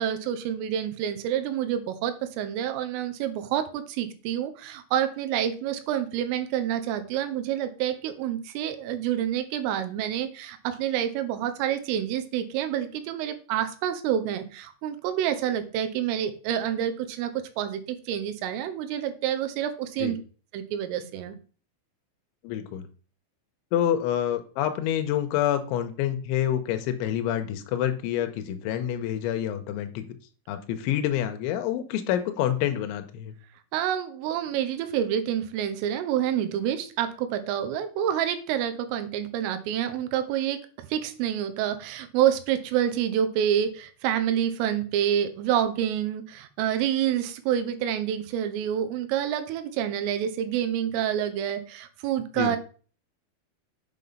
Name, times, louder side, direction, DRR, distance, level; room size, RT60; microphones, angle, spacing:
voice 1, 0.0-17.3 17.6-20.2 20.5-21.4 33.7-52.6, right 10 dB, 80° right, 9 dB, 3.5 m, -28 dB
voice 2, 22.4-22.9 23.7-30.0 30.5-33.3 52.4-52.5, left 11 dB, 80° left, 7 dB, 3.1 m, -27 dB
8.1 x 5.8 x 5.4 m, 0.39 s
omnidirectional pair, 5.9 m